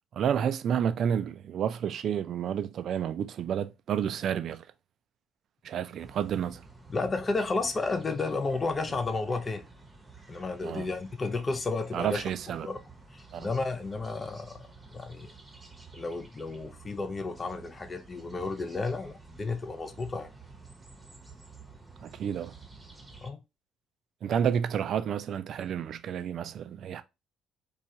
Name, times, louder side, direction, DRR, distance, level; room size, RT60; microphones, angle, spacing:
voice 1, 0.1-4.7 5.6-6.6 10.6-10.9 11.9-12.7 13.3-13.5 22.0-22.5 24.2-27.0, right 8 dB, 55° right, 0.3 m, -30 dB
sound 1, 6.0-23.3, right 3 dB, 15° right, 0.8 m, -51 dB
voice 2, 6.9-9.6 10.3-12.2 12.6-12.8 13.1-15.3 15.9-20.3 23.2-23.4, left 3 dB, 30° left, 0.4 m, -32 dB
3.1 x 2.3 x 2.7 m
hypercardioid pair, 55°, 0 cm